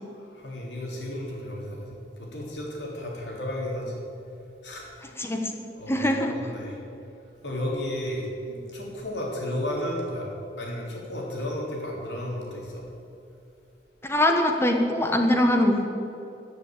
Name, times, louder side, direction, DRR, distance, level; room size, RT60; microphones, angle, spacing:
voice 1, 0.2-4.0 4.6-5.1 5.8-6.8 7.4-10.3 10.6-12.9, left 1 dB, 75° left, -2 dB, 3.4 m, -33 dB
voice 2, 5.2-5.6 5.9-6.3 14.0-15.9, left 1 dB, 15° left, 3 dB, 1.2 m, -22 dB
14.0 x 6.9 x 8.9 m, 2.7 s
head